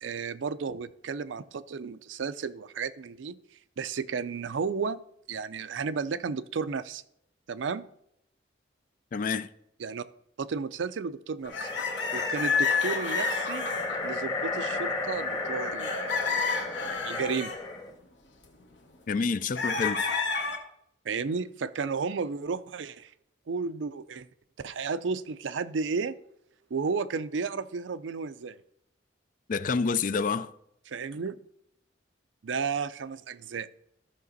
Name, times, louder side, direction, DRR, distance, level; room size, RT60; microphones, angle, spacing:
voice 1, 0.0-3.4 3.8-5.0 5.3-7.0 7.5-7.8 9.8-10.0 10.4-11.7 12.1-13.7 14.0-17.5 21.0-23.1 23.5-24.3 24.6-26.1 26.7-28.6 30.9-31.4 32.4-33.7, right 5 dB, 80° right, 0.5 m, -33 dB
voice 2, 9.1-9.5 19.1-20.1 29.5-30.5, left 5 dB, 45° left, 0.4 m, -28 dB
sound 1, 11.4-14.0 14.5-14.9 15.3-15.4 15.8-17.6 19.5-20.6, left 5 dB, 70° left, 1.3 m, -30 dB
sound 2, 11.5-17.9, left 3 dB, 20° left, 1.2 m, -34 dB
13.5 x 5.9 x 4.0 m
head